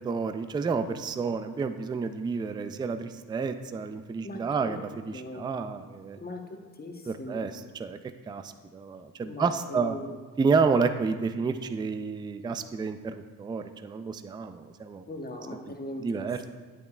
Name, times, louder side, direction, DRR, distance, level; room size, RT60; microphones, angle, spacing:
voice 1, 0.0-6.2 7.1-7.5 7.8-8.0 8.3-10.0 10.4-15.0 16.0-16.4, right 5 dB, 10° right, 9 dB, 0.3 m, -30 dB
voice 2, 4.2-4.8 5.1-5.5 6.2-7.7 9.2-10.1 15.1-16.5, left 1 dB, 25° left, 3 dB, 1.0 m, -40 dB
8.9 x 8.5 x 2.4 m, 1.4 s
cardioid pair, 80°, 39 cm